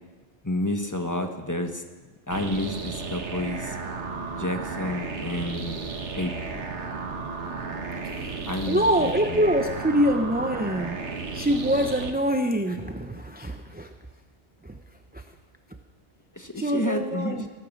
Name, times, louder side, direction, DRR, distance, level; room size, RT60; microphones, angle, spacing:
voice 1, 0.4-1.8 2.3-3.8 4.3-5.8 6.1-6.6 8.5-9.4 16.4-17.4, left 1 dB, 15° left, 5 dB, 1.2 m, -30 dB
sound 1, 2.3-12.1, right 4 dB, 85° right, 1.6 m, -34 dB
voice 2, 8.0-11.0 11.3-13.9 14.6-14.8 15.1-15.2 16.6-17.5, equal, 10° right, 5 dB, 0.7 m, -25 dB
18.0 x 9.6 x 7.2 m, 1.3 s
omnidirectional pair, 1.1 m